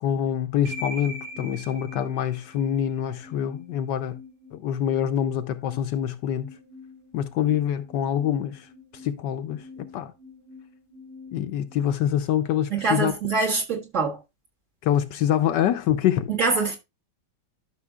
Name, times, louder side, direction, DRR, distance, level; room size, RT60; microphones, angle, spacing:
voice 1, 0.0-4.2 4.5-6.5 7.1-8.7 9.0-10.1 11.3-13.1 14.8-16.3, left 10 dB, 75° left, 1.2 m, -25 dB
sound 1, 0.6-12.7, left 1 dB, 90° right, 4.9 m, -44 dB
voice 2, 12.7-14.2 16.3-16.8, right 4 dB, 40° right, 1.8 m, -24 dB
12.0 x 6.1 x 2.2 m
omnidirectional pair, 2.1 m